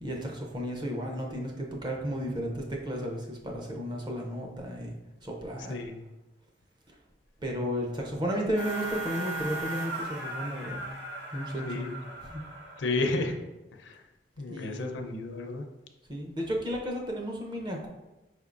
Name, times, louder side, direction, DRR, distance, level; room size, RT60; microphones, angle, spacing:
voice 1, 0.0-5.0 5.2-5.8 7.4-10.8 11.3-11.9 12.2-12.4 14.5-14.9 16.1-17.9, equal, 25° right, 0 dB, 0.6 m, -33 dB
sound 1, 8.6-13.1, right 2 dB, 85° right, 1.3 m, -37 dB
voice 2, 12.8-13.4 13.8-14.0 14.4-15.6, left 2 dB, 80° left, 5 dB, 0.5 m, -32 dB
5.0 x 3.5 x 2.5 m, 1.0 s
head